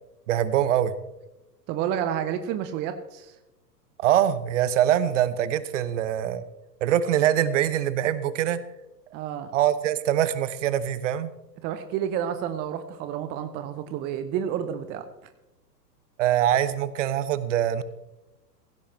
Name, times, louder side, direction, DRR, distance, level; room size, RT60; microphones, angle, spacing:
voice 1, 0.3-0.9 4.0-6.5 6.8-8.6 9.5-11.3 16.2-17.8, right 11 dB, 45° right, 14 dB, 1.0 m, -23 dB
voice 2, 1.7-3.4 9.1-9.5 11.6-15.0, right 9 dB, 20° right, 9 dB, 0.7 m, -30 dB
16.5 x 16.0 x 3.2 m, 0.96 s
figure-of-eight pair, 105°, 50 cm